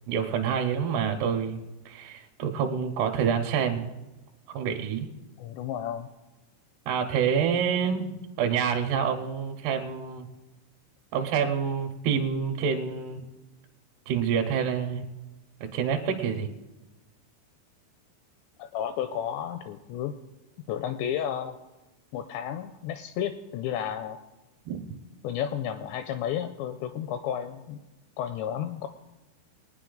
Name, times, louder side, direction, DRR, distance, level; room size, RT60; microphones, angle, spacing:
voice 1, 0.1-1.6 1.9-3.9 4.5-5.1 6.9-8.1 8.4-10.3 11.1-13.2 14.1-15.1 15.7-16.5 24.7-24.8, right 7 dB, 75° right, 3 dB, 2.5 m, -27 dB
voice 2, 5.4-6.1 18.6-20.1 20.7-21.6 22.1-24.2 25.2-27.8 28.2-28.9, left 9 dB, 85° left, 8 dB, 2.5 m, -32 dB
22.0 x 9.6 x 3.9 m, 1.1 s
omnidirectional pair, 5.5 m